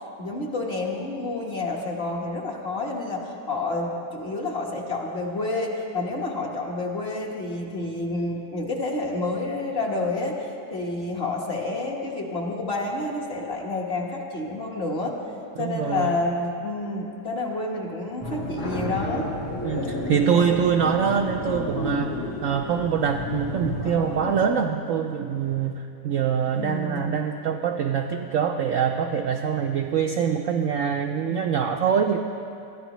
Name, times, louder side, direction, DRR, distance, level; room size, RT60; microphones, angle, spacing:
voice 1, 0.2-15.2 15.6-19.3 26.5-27.1, left 2 dB, 40° left, -2 dB, 1.5 m, -29 dB
voice 2, 15.6-16.2 19.6-22.2 22.4-32.2, right 7 dB, 70° right, 4 dB, 0.8 m, -24 dB
sound 1, 18.2-24.5, left 1 dB, 70° left, 2.4 m, -31 dB
21.0 x 13.0 x 3.1 m, 2.6 s
omnidirectional pair, 1.8 m